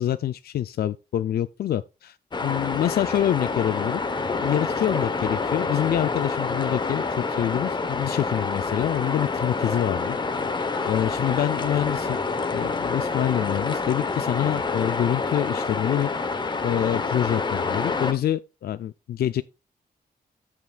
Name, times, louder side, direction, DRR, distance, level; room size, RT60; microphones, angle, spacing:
voice 1, 0.0-2.2 2.4-4.0 4.4-10.2 10.9-12.2 12.5-16.1 16.6-19.4, left 11 dB, 70° left, 0.4 m, -26 dB
sound 1, 2.3-18.1, left 4 dB, 25° left, 0.9 m, -27 dB
14.0 x 5.8 x 2.3 m
wide cardioid pair, 130°, 17 cm